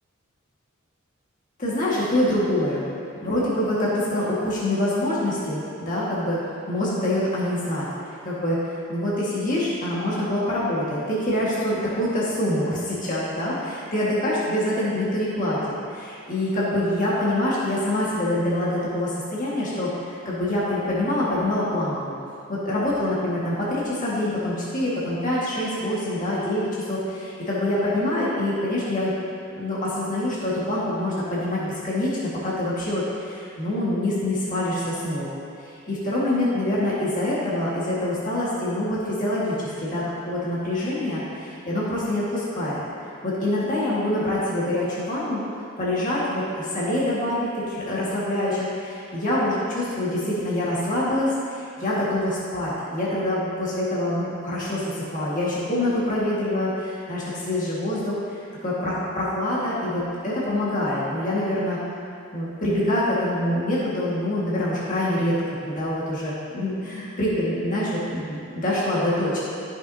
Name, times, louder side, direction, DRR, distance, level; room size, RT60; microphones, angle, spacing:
voice 1, 1.6-2.8 3.2-6.4 6.7-7.9 8.2-15.6 15.9-22.1 22.5-29.1 29.6-35.3 35.6-42.8 43.2-45.4 45.8-61.8 62.3-69.4, left 1 dB, 40° left, -8 dB, 1.7 m, -25 dB
13.5 x 6.2 x 2.8 m, 2.5 s
head